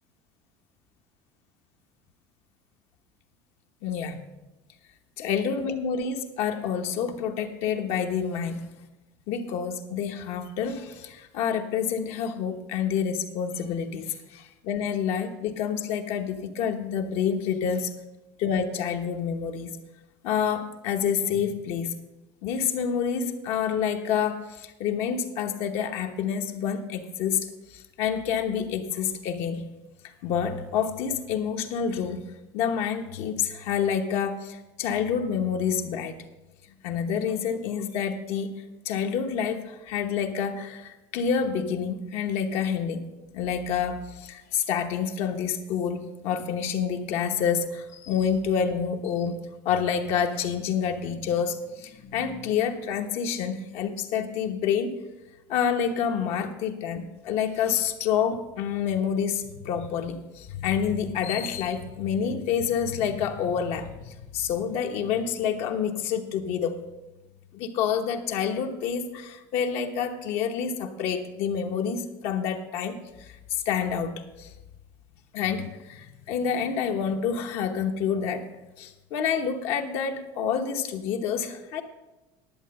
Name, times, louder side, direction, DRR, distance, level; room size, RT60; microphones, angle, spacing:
voice 1, 3.8-4.3 5.2-8.7 9.3-17.9 18.4-19.8 20.2-22.0 22.4-29.7 30.2-32.2 32.5-36.2 36.8-38.6 38.8-43.1 43.3-55.0 55.5-66.8 67.5-74.5 75.3-78.5 78.8-81.8, left 7 dB, 60° left, 4 dB, 1.1 m, -28 dB
11.0 x 7.7 x 6.6 m, 1.0 s
cardioid pair, 155°, 12 cm